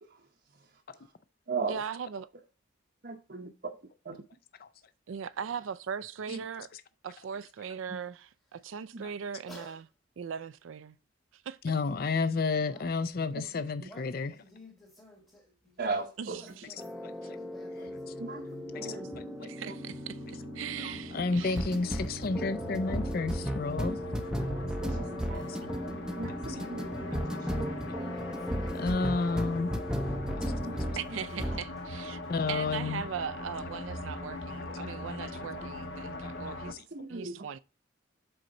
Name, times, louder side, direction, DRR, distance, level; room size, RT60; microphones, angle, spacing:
voice 1, 0.0-1.1 1.5-1.8 3.0-3.5 4.0-4.2 6.3-6.4 7.9-8.0 8.9-9.0 13.4-13.5 13.8-13.9 15.8-16.6 18.2-19.1 19.4-19.7 24.6-25.5 26.2-28.2 30.6-30.8 31.1-31.2 31.5-31.6 35.5-35.7 36.9-37.5, right 4 dB, 50° right, 0.7 m, -39 dB
voice 2, 1.7-2.3 5.1-6.7 7.0-9.9 10.2-11.0 11.3-11.7 16.2-16.6 17.2-17.3 19.5-21.7 25.6-25.7 31.0-32.2 32.5-36.8 37.1-37.6, right 7 dB, 80° right, 0.4 m, -39 dB
voice 3, 9.5-9.8 12.5-12.9 13.9-15.8 16.3-18.4 27.8-31.2 32.2-32.3, left 1 dB, 20° left, 1.4 m, -54 dB
voice 4, 11.6-14.3 17.0-17.1 18.8-19.0 21.1-24.0 28.7-29.7 30.3-30.5 32.3-33.0 34.7-34.8 35.2-35.3 36.2-36.3 36.7-36.8, left 4 dB, 50° left, 0.4 m, -31 dB
sound 1, 16.8-31.1 31.4-31.7, equal, 5° right, 0.5 m, -36 dB
sound 2, 17.8-36.7, left 1 dB, 65° left, 1.1 m, -41 dB
7.8 x 4.3 x 3.8 m
head